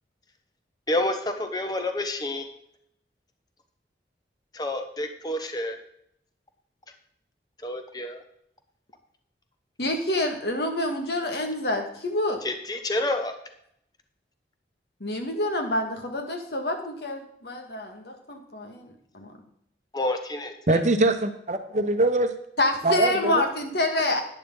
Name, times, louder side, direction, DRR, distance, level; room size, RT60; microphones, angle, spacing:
voice 1, 0.9-2.5 4.5-5.8 7.6-8.2 12.4-13.4 19.9-20.8, left 1 dB, 20° left, 6 dB, 1.0 m, -29 dB
voice 2, 9.8-12.4 15.0-19.3 22.6-24.2, left 1 dB, 65° left, 4 dB, 1.7 m, -27 dB
voice 3, 20.7-22.3 22.8-23.4, right 2 dB, 40° right, 7 dB, 0.9 m, -22 dB
11.0 x 10.0 x 3.8 m, 0.72 s
head